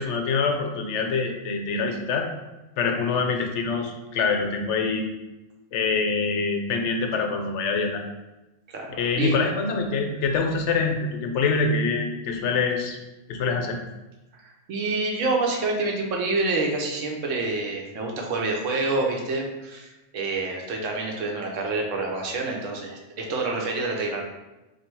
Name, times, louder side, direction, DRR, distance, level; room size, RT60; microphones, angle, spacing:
voice 1, 0.0-2.3 2.8-5.0 5.7-8.0 9.0-13.0 13.3-13.8, left 4 dB, 75° left, 3 dB, 0.9 m, -25 dB
voice 2, 8.7-9.4 14.3-24.2, right 3 dB, 90° right, 1 dB, 1.1 m, -27 dB
3.1 x 2.7 x 4.5 m, 1.1 s
omnidirectional pair, 1.3 m